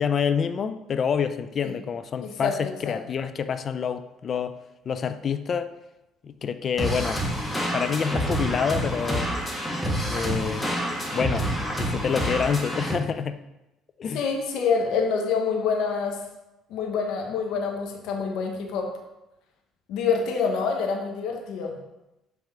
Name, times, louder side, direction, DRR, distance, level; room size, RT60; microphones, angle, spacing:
voice 1, 0.0-4.6 4.9-5.7 6.2-7.2 7.7-9.3 10.1-10.7 11.1-11.5 11.8-13.4 14.0-14.2, left 7 dB, 50° left, 11 dB, 0.4 m, -27 dB
voice 2, 2.2-2.5 2.8-3.0 14.1-16.2 16.7-18.9 19.9-21.8, left 5 dB, 75° left, 2 dB, 1.0 m, -26 dB
sound 1, 6.8-12.9, equal, 15° left, 1.7 m, -28 dB
5.9 x 3.5 x 5.7 m, 0.95 s
supercardioid pair, 70°, 0 cm